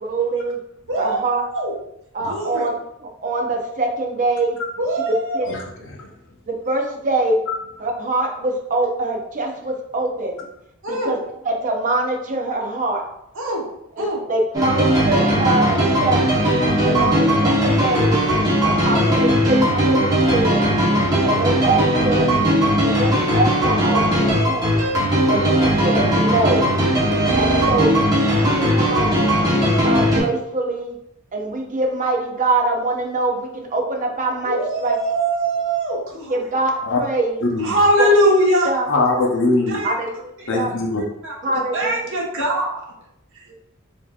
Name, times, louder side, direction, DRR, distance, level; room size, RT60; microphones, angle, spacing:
voice 1, 0.0-0.6 1.0-1.4 2.1-2.8 3.2-4.6 5.3-5.5 6.5-7.4 7.8-10.4 10.9-11.2 11.4-13.0 14.0-14.1 14.3-16.2 16.8-18.2 18.6-20.7 21.2-22.3 22.8-24.9 25.3-26.7 27.4-29.4 29.8-30.9 31.3-35.0 36.3-36.7 37.0-37.3 38.0-38.1 38.7-38.9 39.8-40.1 40.5-40.7 41.4-41.9, right 2 dB, 35° right, 2 dB, 0.6 m, -23 dB
voice 2, 0.9-1.7 2.2-2.7 4.8-5.5 10.8-11.1 13.3-13.6 14.0-14.2 21.7-21.8 25.4-25.6 27.4-27.6 34.4-36.4 37.6-38.7 39.7-39.9 40.4-40.5 41.2-41.3 41.7-42.8, right 1 dB, 60° right, -3 dB, 1.1 m, -21 dB
voice 3, 5.5-6.1 7.5-7.6 36.9-37.0 37.4-37.8 38.9-39.7 40.5-41.0, left 3 dB, 60° left, 0 dB, 0.7 m, -22 dB
sound 1, 14.5-30.2, equal, 15° right, 0.9 m, -18 dB
4.4 x 2.7 x 2.4 m, 0.78 s
head